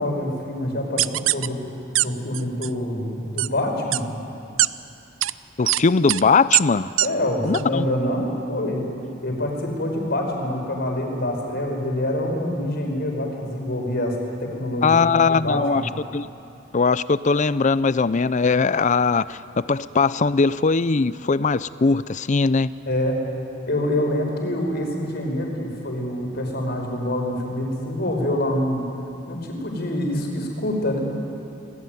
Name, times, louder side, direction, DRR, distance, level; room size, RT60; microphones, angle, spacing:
voice 1, 0.0-1.6 2.0-4.0 7.0-8.9 9.2-15.8 22.9-23.2 23.7-28.8 29.3-31.0, left 1 dB, 55° left, 1 dB, 5.4 m, -26 dB
sound 1, 1.0-1.5 2.0-2.1 2.3-2.7 3.4-3.5 3.9-4.0 4.6-4.7 5.2-5.3 5.7-5.8 6.1-6.2 6.5-6.6 7.0-7.1 7.5-7.6, right 15 dB, 80° right, 0.5 m, -20 dB
voice 2, 5.6-6.9 7.4-7.9 14.8-15.8 16.1-16.3 16.7-19.4 19.7-22.7, left 4 dB, 40° left, 16 dB, 0.5 m, -20 dB
28.0 x 20.0 x 9.4 m, 2.7 s
head